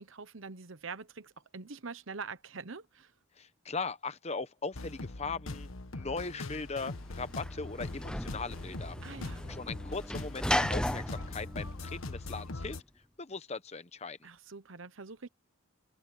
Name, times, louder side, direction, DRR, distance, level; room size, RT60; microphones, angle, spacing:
voice 1, 0.0-3.1 9.0-9.4 14.2-15.3, right 4 dB, 75° right, 1.0 m, -44 dB
voice 2, 3.4-9.0 9.5-12.8 13.2-14.2, left 4 dB, 30° left, 1.0 m, -39 dB
sound 1, 4.7-12.8, left 2 dB, 85° left, 1.3 m, -42 dB
Sliding door / Slam, 6.7-12.6, left 1 dB, 5° left, 0.7 m, -36 dB
open air
head